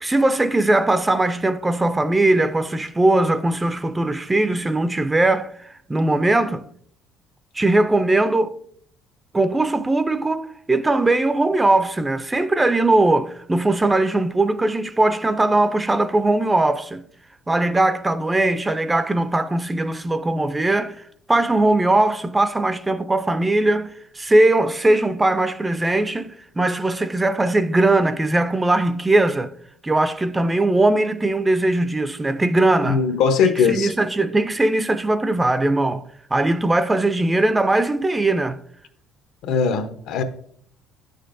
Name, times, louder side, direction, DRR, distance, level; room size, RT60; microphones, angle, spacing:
voice 1, 0.0-6.6 7.5-8.6 9.3-17.0 17.5-21.0 21.3-29.5 29.8-33.0 33.4-36.0 36.3-38.6, right 2 dB, 10° right, 0.3 m, -20 dB
voice 2, 32.8-33.9 39.4-40.2, left 6 dB, 70° left, 0.8 m, -20 dB
9.2 x 6.5 x 2.6 m
cardioid pair, 130°, 0 cm